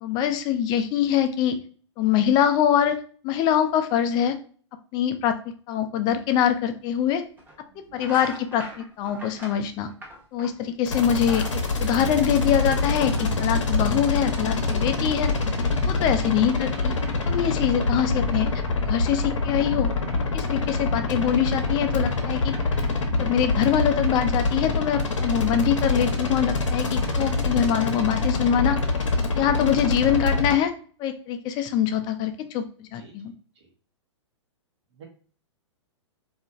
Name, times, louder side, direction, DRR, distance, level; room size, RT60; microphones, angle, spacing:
voice 1, 0.0-1.6 2.0-3.0 3.2-4.4 4.9-5.4 5.7-7.2 7.9-9.9 10.3-11.4 11.8-15.3 15.8-16.9 17.3-18.5 18.9-19.9 20.3-22.5 23.2-28.8 29.4-30.7 31.0-33.3, left 9 dB, 25° left, 8 dB, 0.4 m, -24 dB
sound 1, 6.6-6.7 7.4-7.6 7.9-10.7 11.0-12.7, right 1 dB, 10° right, 0.7 m, -41 dB
voice 2, 7.7-8.0 10.6-10.8 13.7-13.8 15.9-16.4 29.5-29.6 32.9-33.1 33.5-33.7 34.9-35.1, right 5 dB, 65° right, 1 dB, 0.9 m, -49 dB
sound 2, 10.9-30.5, left 3 dB, 80° left, 0.7 m, -25 dB
2.8 x 2.4 x 2.5 m, 0.43 s
hypercardioid pair, 115°, 16 cm